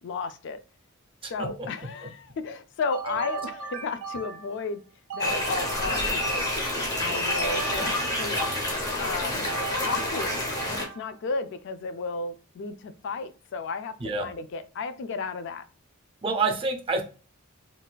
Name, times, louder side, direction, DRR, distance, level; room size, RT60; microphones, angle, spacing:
voice 1, 0.0-0.6 1.2-4.8 5.1-6.5 7.0-7.9 8.2-8.4 9.0-9.5 9.8-15.6, left 4 dB, 60° left, 11 dB, 0.3 m, -33 dB
voice 2, 1.2-1.7 14.0-14.2 16.2-17.0, right 3 dB, 25° right, 5 dB, 0.5 m, -27 dB
sound 1, 2.9-4.6 5.1-6.8 7.3-8.9 9.5-11.2, right 5 dB, 85° right, 0.6 m, -37 dB
sound 2, 5.2-10.8, left 1 dB, 15° left, 0.8 m, -28 dB
3.8 x 2.4 x 2.2 m, 0.37 s
head